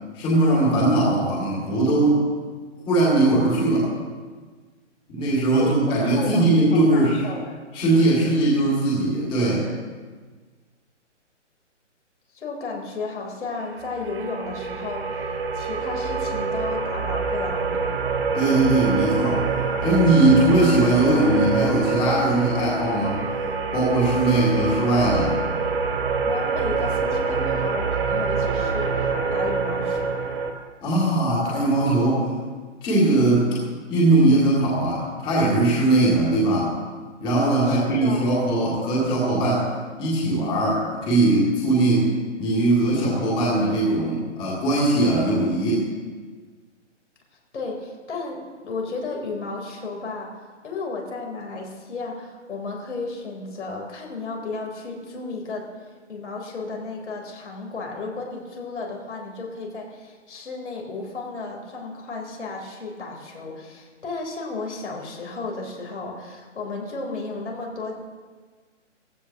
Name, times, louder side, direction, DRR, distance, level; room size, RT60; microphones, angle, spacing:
voice 1, 0.1-2.2 2.9-3.9 5.1-7.2 7.7-9.7 18.3-19.4 19.8-23.2 23.7-25.4 30.8-32.3 32.8-33.5 33.9-36.7 37.2-39.7 40.0-42.1 42.4-45.9, right 2 dB, 15° left, -6 dB, 2.4 m, -20 dB
voice 2, 5.6-7.6 12.3-15.3 15.5-17.8 26.2-29.1 29.3-30.2 37.7-38.3 47.5-50.3 50.6-55.7 56.1-67.9, left 3 dB, 70° left, 0 dB, 3.7 m, -33 dB
sound 1, 13.7-30.5, right 4 dB, 55° right, 2.3 m, -26 dB
17.0 x 15.0 x 2.9 m, 1.5 s
hypercardioid pair, 160°, 37 cm